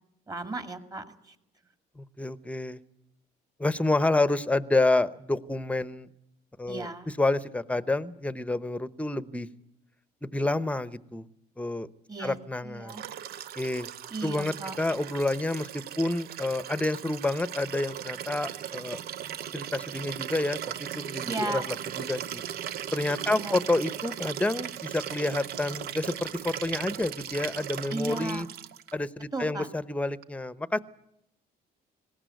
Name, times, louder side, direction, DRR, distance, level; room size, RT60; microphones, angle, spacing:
voice 1, 0.3-1.4 6.7-7.1 12.1-12.4 12.6-13.0 14.1-14.8 21.2-21.7 23.2-23.6 27.9-28.5 29.3-29.7, right 2 dB, 20° right, 8 dB, 2.2 m, -35 dB
voice 2, 2.0-2.8 3.6-6.1 6.6-9.5 10.2-11.2 11.6-11.9 12.2-12.9 13.6-13.9 14.2-19.0 19.5-22.4 22.9-28.5 28.9-30.8, left 2 dB, 10° left, 15 dB, 0.9 m, -29 dB
Liquid, 12.9-28.9 30.2-30.3, right 10 dB, 65° right, 0.8 m, -38 dB
19.5 x 17.5 x 9.3 m, 0.82 s
cardioid pair, 110°, 17 cm